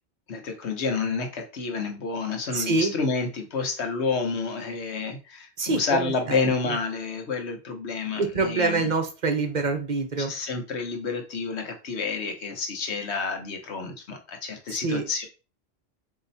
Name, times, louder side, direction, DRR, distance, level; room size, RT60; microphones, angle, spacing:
voice 1, 0.3-8.9 10.2-15.3, left 4 dB, 80° left, 4 dB, 1.3 m, -29 dB
voice 2, 2.5-2.9 5.6-6.5 8.2-10.3 14.7-15.0, right 3 dB, 45° right, 5 dB, 0.9 m, -26 dB
4.1 x 3.0 x 4.0 m, 0.31 s
omnidirectional pair, 1.1 m